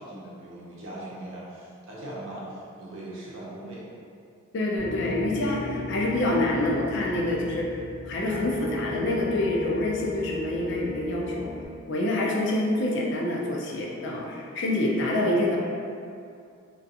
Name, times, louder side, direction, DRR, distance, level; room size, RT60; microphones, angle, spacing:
voice 1, 0.0-3.9, right 1 dB, 65° right, -6 dB, 0.6 m, -40 dB
voice 2, 4.5-11.5 11.9-15.6, left 1 dB, 60° left, -2 dB, 0.4 m, -27 dB
Piano, 4.8-11.7, left 3 dB, 5° right, 0.7 m, -35 dB
2.4 x 2.3 x 2.6 m, 2.4 s
head